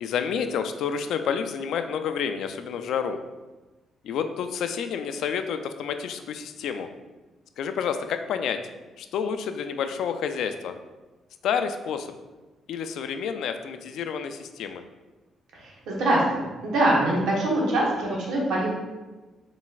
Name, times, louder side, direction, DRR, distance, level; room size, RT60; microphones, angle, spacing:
voice 1, 0.0-3.2 4.0-6.9 7.6-8.6 9.0-10.7 11.4-12.2 12.7-14.8, left 7 dB, 75° left, 8 dB, 0.3 m, -29 dB
voice 2, 15.5-18.7, right 1 dB, 80° right, -3 dB, 1.2 m, -24 dB
4.1 x 4.0 x 2.4 m, 1.2 s
cardioid pair, 90°, 0 cm